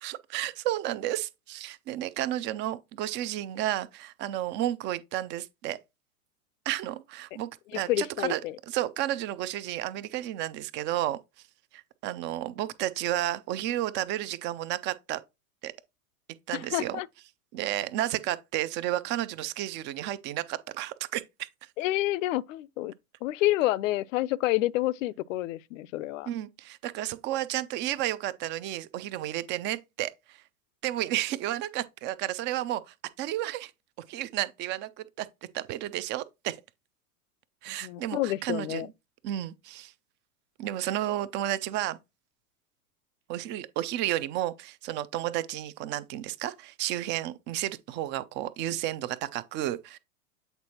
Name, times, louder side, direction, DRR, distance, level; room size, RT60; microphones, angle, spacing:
voice 1, 0.0-5.8 6.7-8.4 8.7-11.2 11.7-15.2 15.6-15.7 16.5-17.0 17.5-21.5 26.3-30.4 30.8-33.7 34.1-35.3 35.5-36.6 37.6-38.9 39.2-39.9 40.6-42.0 43.3-50.0, right 13 dB, 25° right, 0.4 m, -32 dB
voice 2, 7.9-8.6 16.5-17.1 21.8-22.9 23.2-26.3 37.7-38.9, left 16 dB, 60° left, 0.5 m, -28 dB
8.1 x 4.2 x 2.8 m
hypercardioid pair, 100°, 44 cm